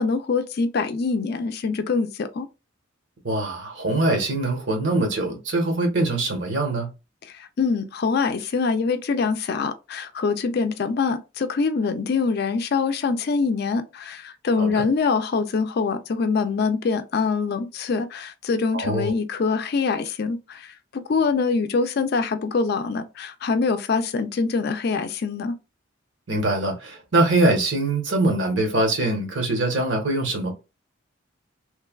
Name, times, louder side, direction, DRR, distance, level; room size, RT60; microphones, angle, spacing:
voice 1, 0.0-2.5 7.3-25.5, left 4 dB, 55° left, 0.4 m, -24 dB
voice 2, 3.2-6.9 14.6-14.8 18.7-19.1 26.3-30.5, right 2 dB, 70° right, 1.0 m, -23 dB
3.1 x 2.2 x 2.2 m
head